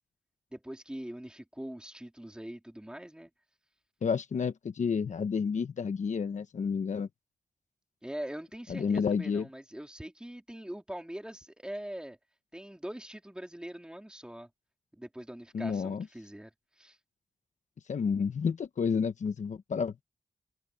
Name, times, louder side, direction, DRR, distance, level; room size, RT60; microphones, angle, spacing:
voice 1, 0.5-3.3 8.0-12.2 12.5-14.5 14.9-16.5 16.8-17.0, right 1 dB, 5° right, 3.5 m, -42 dB
voice 2, 4.0-7.1 8.7-9.5 15.5-16.1 17.9-20.0, left 6 dB, 65° left, 1.1 m, -30 dB
wide cardioid pair, 120°, 13 cm